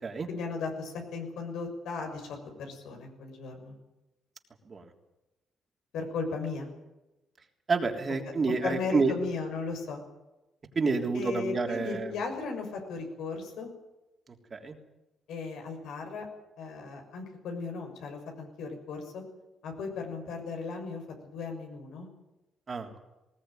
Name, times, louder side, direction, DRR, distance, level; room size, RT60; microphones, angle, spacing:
voice 1, 0.3-3.7 5.9-6.7 8.6-10.0 11.1-13.7 15.3-16.3 16.6-19.2 19.6-22.1, left 4 dB, 80° left, 3 dB, 6.5 m, -36 dB
voice 2, 7.7-9.1 10.7-12.1 14.5-14.7 22.7-23.0, right 4 dB, 35° right, 3 dB, 3.5 m, -29 dB
20.0 x 18.5 x 9.3 m, 0.99 s
cardioid pair, 90°, 0 cm